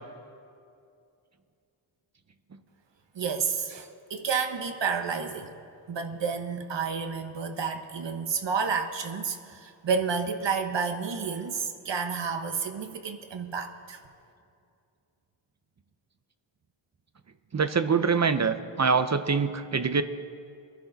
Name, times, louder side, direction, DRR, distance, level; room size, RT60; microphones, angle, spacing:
voice 1, 3.1-5.5 5.9-14.0, right 5 dB, 60° right, 6 dB, 1.2 m, -30 dB
voice 2, 17.5-20.0, right 5 dB, 35° right, 11 dB, 0.6 m, -24 dB
23.0 x 11.5 x 4.0 m, 2.4 s
wide cardioid pair, 115°, 48 cm